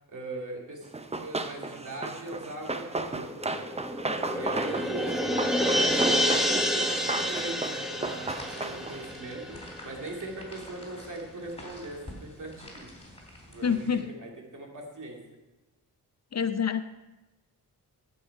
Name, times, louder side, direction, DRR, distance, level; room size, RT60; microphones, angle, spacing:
voice 1, 0.1-0.9 1.2-3.7 4.3-5.2 5.6-9.6 9.8-12.9 13.5-13.8 14.2-15.2, right 2 dB, 55° right, 0 dB, 2.4 m, -40 dB
Run, 0.9-9.1, right 3 dB, 20° right, 0.6 m, -35 dB
sound 1, 3.2-10.1 10.5-10.6, equal, ahead, 1.2 m, -29 dB
sound 2, 8.3-14.0, left 1 dB, 15° left, 3.4 m, -47 dB
voice 2, 13.6-14.1 16.3-16.8, left 7 dB, 45° left, 11 dB, 0.5 m, -27 dB
14.5 x 5.5 x 4.7 m, 1.1 s
cardioid pair, 70°, 36 cm